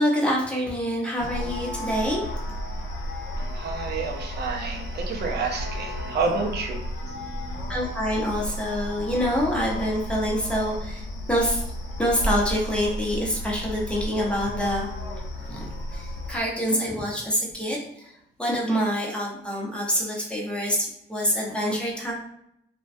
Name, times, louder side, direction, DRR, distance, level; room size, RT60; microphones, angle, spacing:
voice 1, 0.0-2.2 7.7-11.0 11.3-11.6 12.0-14.9 15.5-15.7 15.9-17.8 18.4-22.1, equal, 5° left, -4 dB, 0.7 m, -26 dB
sound 1, 1.2-16.4, equal, 85° left, 0.6 m, -33 dB
voice 2, 3.4-6.8, right 4 dB, 55° right, 2 dB, 0.5 m, -29 dB
2.2 x 2.2 x 2.5 m, 0.78 s
cardioid pair, 90°, 20 cm